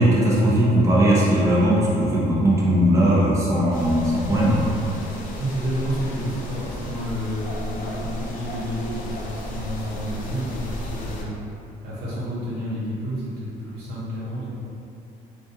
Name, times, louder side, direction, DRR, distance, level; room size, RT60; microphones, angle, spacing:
voice 1, 0.0-4.7, right 1 dB, 15° right, -7 dB, 0.5 m, -19 dB
sound 1, 3.7-11.2, left 1 dB, 55° left, 0.4 m, -34 dB
voice 2, 5.4-11.3 11.8-14.5, equal, 75° right, -7 dB, 0.8 m, -30 dB
2.4 x 2.3 x 2.7 m, 2.6 s
cardioid pair, 110°, 17 cm